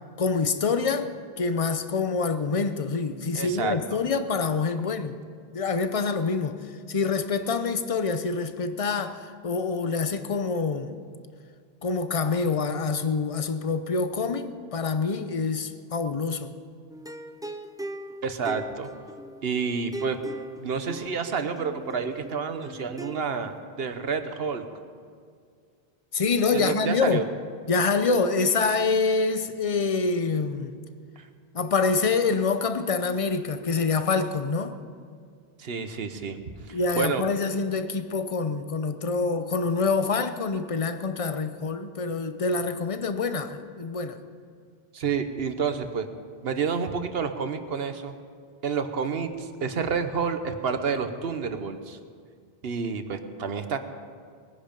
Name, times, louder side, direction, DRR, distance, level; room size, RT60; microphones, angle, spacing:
voice 1, 0.2-1.1 1.4-5.2 5.5-6.6 6.9-11.0 11.8-16.5 26.1-27.2 27.7-30.7 31.5-34.8 36.7-44.2, left 4 dB, 35° left, 10 dB, 0.8 m, -26 dB
voice 2, 3.4-3.8 18.2-18.9 19.4-20.2 20.6-24.6 26.5-27.2 31.2-31.3 35.6-36.4 36.6-37.2 44.9-46.1 46.4-48.1 48.6-52.0 52.6-53.8, right 5 dB, 75° right, 8 dB, 1.2 m, -29 dB
sound 1, 16.9-23.6, right 1 dB, 5° right, 0.3 m, -40 dB
21.0 x 10.0 x 5.3 m, 2.1 s
omnidirectional pair, 1.0 m